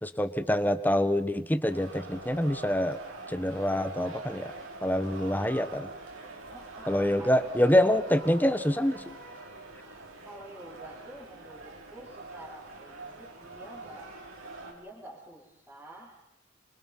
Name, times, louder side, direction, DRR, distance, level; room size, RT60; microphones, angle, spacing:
voice 1, 0.0-3.0 3.3-4.5 4.8-5.9 6.9-9.0, left 1 dB, 10° left, 11 dB, 1.2 m, -26 dB
sound 1, 1.7-14.7, right 3 dB, 90° right, 6.6 m, -44 dB
voice 2, 6.5-7.5 9.4-14.1 14.6-16.3, right 1 dB, 10° right, -8 dB, 5.7 m, -49 dB
27.0 x 26.0 x 5.7 m, 0.96 s
head